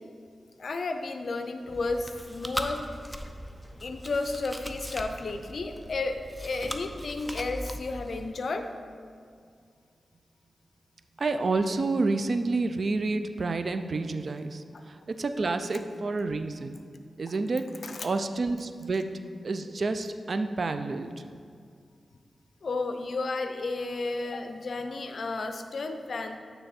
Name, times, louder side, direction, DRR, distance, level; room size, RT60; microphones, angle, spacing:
voice 1, 0.6-2.8 3.8-8.7 17.8-18.1 22.6-26.4, left 3 dB, 65° left, 7 dB, 0.5 m, -32 dB
Chewing mastication, 1.7-8.3, equal, ahead, 0.5 m, -39 dB
voice 2, 11.2-16.7 17.2-17.6 18.0-19.2 19.4-21.1, right 3 dB, 60° right, 9 dB, 0.4 m, -29 dB
8.9 x 3.4 x 4.2 m, 2.2 s
cardioid pair, 55°, 0 cm